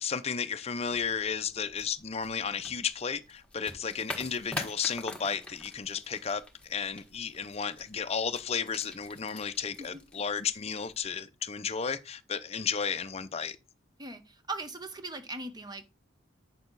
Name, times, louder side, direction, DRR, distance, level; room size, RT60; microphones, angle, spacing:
voice 1, 0.0-6.4 6.7-13.6, left 6 dB, 30° left, 0.5 m, -33 dB
sound 1, 0.8-11.1, left 2 dB, 5° left, 1.4 m, -46 dB
voice 2, 14.0-15.8, right 2 dB, 20° right, 0.9 m, -39 dB
9.0 x 6.6 x 4.0 m
head